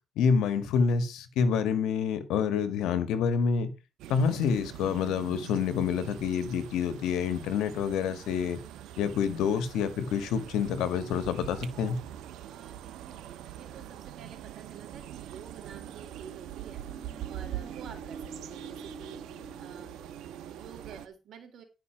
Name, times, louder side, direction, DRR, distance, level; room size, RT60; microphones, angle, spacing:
voice 1, 0.2-3.7 4.1-8.6 9.0-12.0, left 6 dB, 90° left, 1.8 m, -27 dB
sound 1, 4.0-21.1, right 11 dB, 90° right, 1.1 m, -43 dB
voice 2, 12.5-16.8 17.3-19.2 19.6-20.0 20.3-21.6, right 7 dB, 65° right, 3.4 m, -49 dB
Human voice, 15.5-20.5, left 1 dB, 10° left, 6.8 m, -52 dB
11.5 x 5.9 x 5.9 m
cardioid pair, 90°, 0 cm